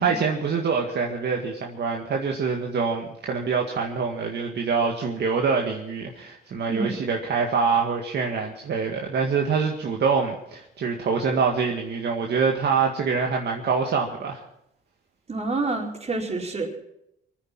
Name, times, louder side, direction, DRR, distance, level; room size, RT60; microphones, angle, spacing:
voice 1, 0.0-14.4, right 5 dB, 60° right, 1 dB, 2.0 m, -25 dB
voice 2, 15.3-16.8, right 3 dB, 35° right, 0 dB, 4.5 m, -28 dB
24.0 x 9.8 x 6.1 m, 0.77 s
cardioid pair, 90°, 20 cm